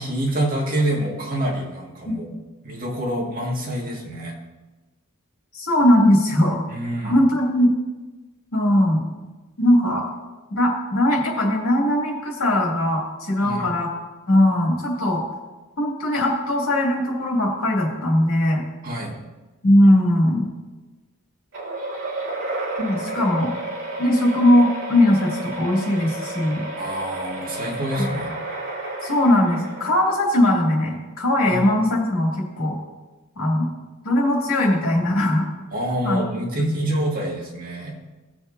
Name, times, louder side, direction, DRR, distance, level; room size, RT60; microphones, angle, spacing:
voice 1, 0.0-2.4 2.6-4.4 6.7-7.2 13.4-13.7 18.8-19.2 26.8-28.3 31.5-31.7 35.7-38.0, right 1 dB, 40° right, -2 dB, 2.0 m, -27 dB
voice 2, 5.5-6.6 7.0-7.7 8.5-9.0 9.6-10.1 10.5-13.9 14.3-15.2 15.8-18.7 19.6-20.5 22.8-23.5 24.0-26.6 29.0-32.3 32.6-32.8 33.4-33.7 34.0-35.4 36.0-36.3 36.6-37.0, left 1 dB, 65° left, -2 dB, 2.8 m, -19 dB
sound 1, 21.5-30.3, right 2 dB, 60° right, 2.6 m, -31 dB
18.0 x 7.2 x 2.8 m, 1.2 s
head